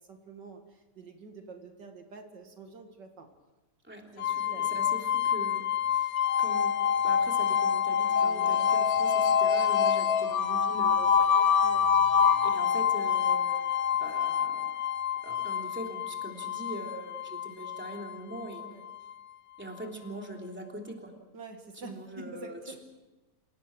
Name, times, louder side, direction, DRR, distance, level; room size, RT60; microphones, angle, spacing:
voice 1, 0.1-0.6 1.0-3.3 4.2-4.8 8.2-8.5 11.6-11.9 18.6-18.9 21.3-22.8, right 3 dB, 85° right, 4 dB, 2.7 m, -47 dB
voice 2, 3.8-6.1 6.4-6.7 7.0-11.5 12.4-13.7 14.0-14.7 15.2-18.6 19.6-21.1 21.7-22.8, right 1 dB, 5° right, 1 dB, 3.3 m, -42 dB
sound 1, 4.2-19.1, left 7 dB, 60° left, 1.3 m, -26 dB
29.0 x 18.0 x 6.2 m, 1.1 s
omnidirectional pair, 1.8 m